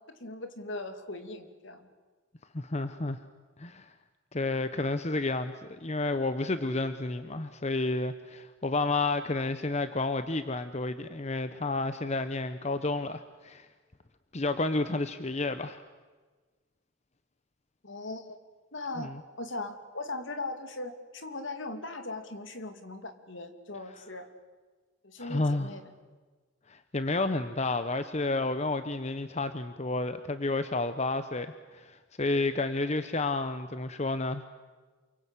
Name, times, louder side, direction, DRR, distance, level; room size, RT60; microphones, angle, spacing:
voice 1, 0.1-1.9 17.8-18.4 18.7-24.3 25.0-25.8, left 2 dB, 65° left, 7 dB, 2.8 m, -39 dB
voice 2, 2.5-3.2 3.6-3.9 4.3-13.7 14.3-15.8 19.0-19.1 25.2-25.7 26.7-34.4, left 2 dB, 35° left, 10 dB, 0.9 m, -31 dB
28.0 x 24.0 x 8.3 m, 1.4 s
head